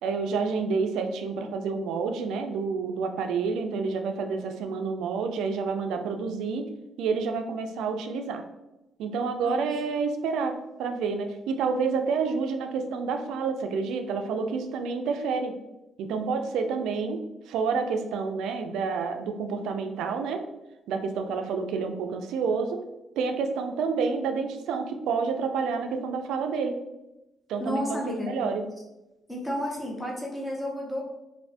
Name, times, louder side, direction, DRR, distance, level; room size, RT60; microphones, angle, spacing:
voice 1, 0.0-6.7 7.0-8.4 9.0-15.6 16.0-20.4 20.9-22.8 23.2-26.8 27.5-28.7, right 5 dB, 85° right, 6 dB, 0.3 m, -29 dB
voice 2, 27.6-28.3 29.3-31.0, equal, 10° left, -3 dB, 1.0 m, -31 dB
2.5 x 2.5 x 3.3 m, 0.96 s
cardioid pair, 90°, 0 cm